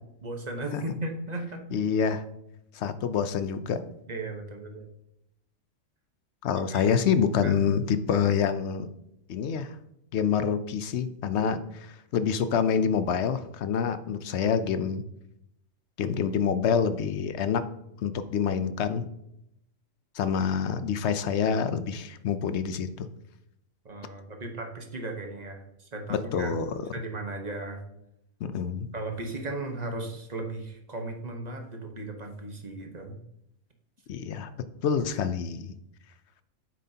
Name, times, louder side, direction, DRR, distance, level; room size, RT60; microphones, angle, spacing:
voice 1, 0.2-1.6 4.1-4.9 6.5-6.9 7.4-7.6 23.8-26.5 26.9-27.8 28.9-33.2, right 2 dB, 35° right, 3 dB, 1.2 m, -36 dB
voice 2, 1.7-2.2 2.7-3.8 6.4-8.9 9.3-9.8 10.1-15.0 16.0-17.6 18.0-19.1 20.1-23.1 26.1-26.7 28.4-28.9 34.1-34.5 34.8-35.7, left 7 dB, 65° left, 12 dB, 0.9 m, -27 dB
9.3 x 7.6 x 2.8 m, 0.80 s
omnidirectional pair, 1.3 m